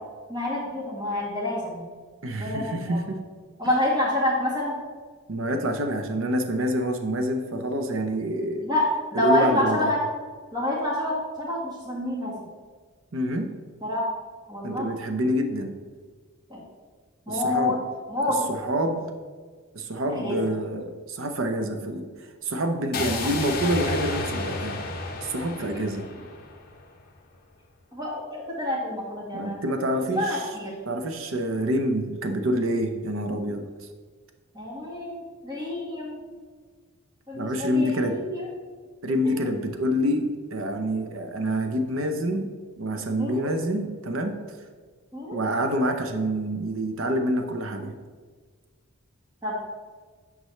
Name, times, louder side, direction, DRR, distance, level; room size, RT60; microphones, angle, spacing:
voice 1, 0.3-1.8 2.4-3.0 3.6-4.8 8.6-8.9 9.1-10.0 10.5-12.3 13.8-14.0 14.5-14.8 16.5-16.6 17.3-17.8 18.1-18.4 20.1-20.4 23.1-23.3 27.9-29.6 30.1-30.7 34.5-36.2 37.3-38.5 43.2-43.5 45.1-45.4 49.4-49.5, left 1 dB, 20° right, -4 dB, 1.7 m, -27 dB
voice 2, 2.2-3.2 5.3-8.7 9.1-9.9 13.1-13.5 14.6-15.7 17.3-17.8 18.5-19.1 19.7-22.1 22.4-24.8 25.2-26.1 29.3-30.5 30.9-33.7 37.3-38.2 39.0-42.5 42.8-44.4 45.3-47.9, equal, 65° right, 6 dB, 0.7 m, -27 dB
sound 1, 22.9-27.0, left 3 dB, 40° left, 0.8 m, -32 dB
9.2 x 5.1 x 3.2 m, 1.5 s
head